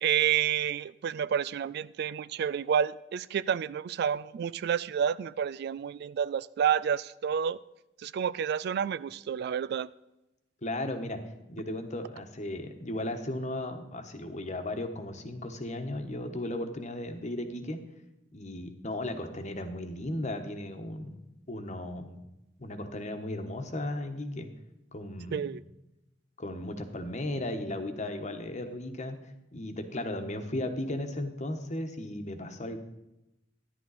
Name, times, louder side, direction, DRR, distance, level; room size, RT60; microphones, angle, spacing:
voice 1, 0.0-7.6 8.0-9.9 25.3-25.6, right 8 dB, 60° right, 0.3 m, -29 dB
voice 2, 10.6-11.2 11.5-17.8 18.3-21.2 21.5-22.2 22.6-24.5 24.9-25.6 26.4-29.2 29.5-32.8, left 1 dB, 40° left, 1.2 m, -35 dB
13.0 x 10.5 x 4.1 m
head